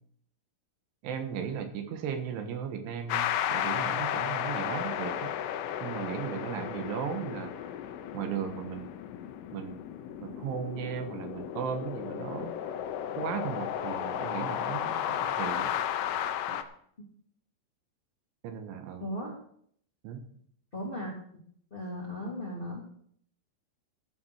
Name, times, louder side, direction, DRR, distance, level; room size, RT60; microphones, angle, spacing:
voice 1, 1.0-5.3 5.8-7.7 8.1-8.9 9.5-9.8 10.2-12.7 13.1-15.7 16.5-16.6 18.4-19.1 20.0-20.2, right 8 dB, 75° right, 7 dB, 3.6 m, -36 dB
sound 1, 3.1-16.6, left 10 dB, 80° left, 3.4 m, -34 dB
voice 2, 19.0-19.3 20.7-21.1 21.7-22.8, equal, 15° left, -5 dB, 1.7 m, -36 dB
15.0 x 7.1 x 6.4 m, 0.63 s
omnidirectional pair, 5.8 m